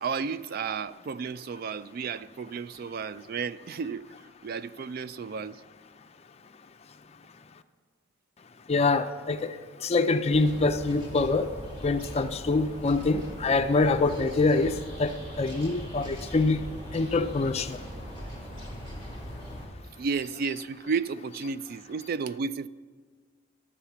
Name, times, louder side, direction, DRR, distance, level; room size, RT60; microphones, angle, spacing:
voice 1, 0.0-4.0 4.4-5.6 20.0-22.7, right 5 dB, 50° right, 0.3 m, -32 dB
voice 2, 8.7-11.5 11.8-16.6 16.9-17.8, left 3 dB, 35° left, 0.4 m, -25 dB
sound 1, 10.3-19.7, equal, 25° right, 2.5 m, -40 dB
11.5 x 7.3 x 7.0 m
head